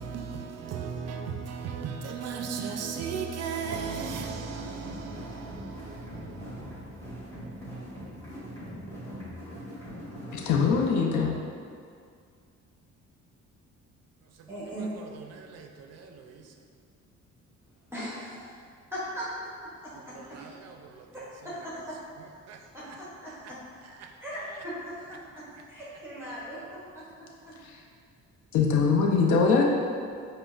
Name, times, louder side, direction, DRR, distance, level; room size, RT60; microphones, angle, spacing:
voice 1, 0.0-7.6 14.4-14.5 15.1-16.5 20.0-21.2 22.5-23.0 23.4-23.5 23.8-24.1, right 6 dB, 55° right, 0.4 m, -37 dB
sound 1, 3.8-10.9, equal, 10° left, 1.5 m, -41 dB
voice 2, 10.3-11.3 28.5-29.6, left 5 dB, 75° left, 0.5 m, -22 dB
voice 3, 14.5-15.0 17.9-18.5 18.9-19.3 19.6-20.5 21.1-22.0 22.7-23.6 24.2-27.5, equal, 10° right, 0.7 m, -39 dB
5.0 x 2.1 x 2.4 m
cardioid pair, 90°, 30 cm